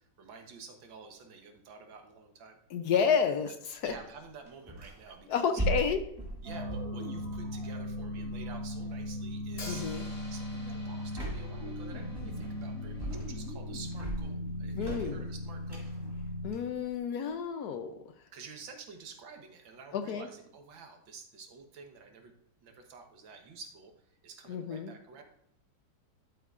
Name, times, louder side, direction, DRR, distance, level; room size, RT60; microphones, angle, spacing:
voice 1, 0.0-2.6 3.2-3.5 3.8-5.6 6.4-9.9 10.3-15.9 18.3-22.3 22.6-25.2, right 5 dB, 85° right, 4 dB, 1.9 m, -50 dB
voice 2, 2.7-3.9 5.3-6.0 9.7-10.0 14.7-15.3 16.4-18.0 19.9-20.3 24.5-24.9, left 7 dB, 65° left, 8 dB, 1.1 m, -30 dB
sound 1, 3.8-5.1 5.6-7.9 9.0-9.3 9.7-9.9 11.0-11.7 12.1-12.7 13.0-13.5 13.8-17.4, right 2 dB, 10° right, 2.0 m, -39 dB
sound 2, 6.4-16.5, left 1 dB, 50° right, 2.5 m, -38 dB
Hi-hat, 9.6-13.5, left 2 dB, 25° left, 1.1 m, -50 dB
12.0 x 8.1 x 2.5 m, 0.73 s
omnidirectional pair, 2.0 m